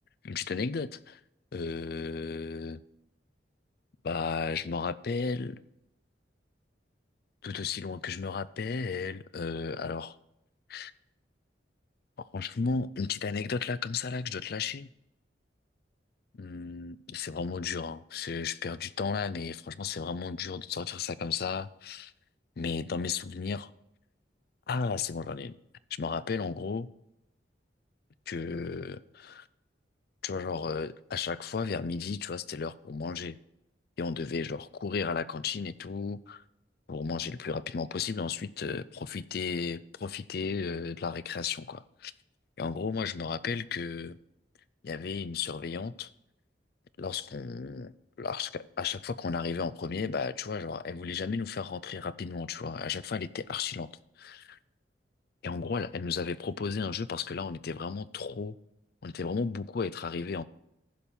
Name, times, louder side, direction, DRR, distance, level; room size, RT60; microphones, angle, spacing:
voice 1, 0.2-1.2 1.5-2.8 4.0-5.6 7.4-10.2 10.7-10.9 12.3-14.9 16.4-22.1 22.6-23.7 24.7-25.6 26.0-26.9 28.3-29.4 30.2-33.4 34.0-36.4 36.9-42.1 42.6-44.2 44.8-46.1 47.0-53.9 54.2-54.6 55.4-58.6 59.0-60.4, left 5 dB, 60° left, 16 dB, 0.4 m, -34 dB
15.0 x 5.3 x 4.3 m, 0.84 s
head